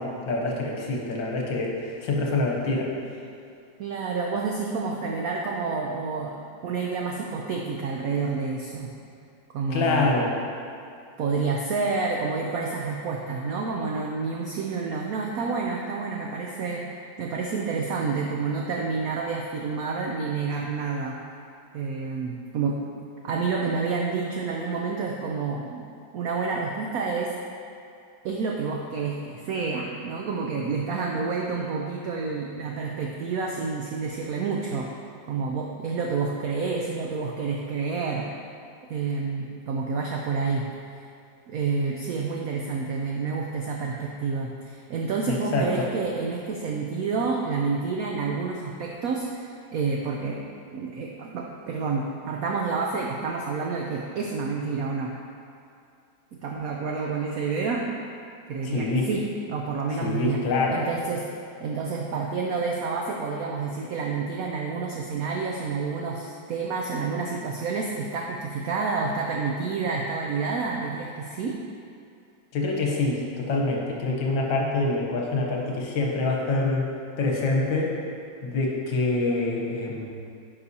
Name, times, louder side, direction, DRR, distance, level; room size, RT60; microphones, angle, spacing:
voice 1, 0.0-2.9 9.7-10.4 45.3-45.9 58.6-59.1 60.0-60.8 72.5-76.9 77.2-77.9 78.4-80.1, left 2 dB, 75° left, -2 dB, 1.6 m, -26 dB
voice 2, 3.8-6.4 6.6-8.9 9.5-10.3 11.2-16.8 17.2-21.2 21.7-22.8 23.2-25.8 26.1-27.3 28.2-34.9 35.3-38.3 38.9-40.6 41.5-50.4 50.7-55.1 56.4-57.8 58.5-60.4 60.7-61.3 61.6-71.6, right 4 dB, 85° right, 0 dB, 0.7 m, -29 dB
9.5 x 5.5 x 2.8 m, 2.4 s
omnidirectional pair, 2.1 m